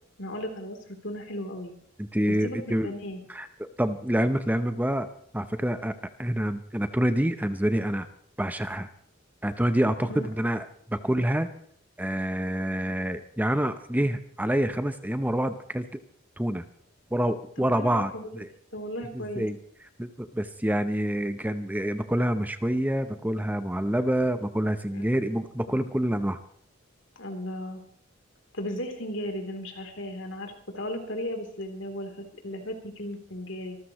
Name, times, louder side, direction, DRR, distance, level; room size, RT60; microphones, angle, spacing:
voice 1, 0.2-1.7 2.3-3.2 10.0-10.3 17.6-18.4 18.7-19.5 24.9-25.0 25.7-25.8 27.2-27.8 28.5-33.8, equal, 65° left, 3 dB, 3.4 m, -36 dB
voice 2, 2.0-2.9 3.3-8.1 8.4-8.9 9.4-11.5 12.0-15.9 16.4-16.6 17.1-18.5 19.1-19.6 20.0-26.4, right 1 dB, 10° right, 10 dB, 0.7 m, -27 dB
26.5 x 14.0 x 3.1 m, 0.62 s
head